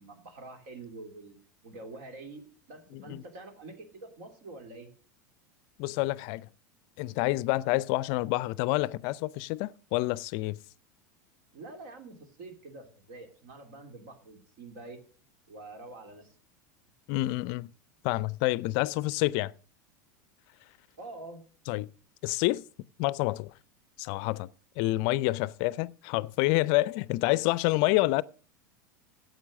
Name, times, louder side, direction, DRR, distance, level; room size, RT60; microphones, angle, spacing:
voice 1, 0.0-1.4 1.6-4.9 11.5-15.0 15.5-16.3 21.0-21.4, right 2 dB, 65° right, 3.0 m, -46 dB
voice 2, 2.9-3.2 5.8-6.5 7.0-10.6 17.1-17.7 18.0-19.5 21.7-21.9 22.2-22.6 23.0-23.5 24.0-24.5 24.8-28.2, left 19 dB, 55° left, 0.4 m, -28 dB
12.0 x 7.6 x 6.3 m
hypercardioid pair, 90°, 10 cm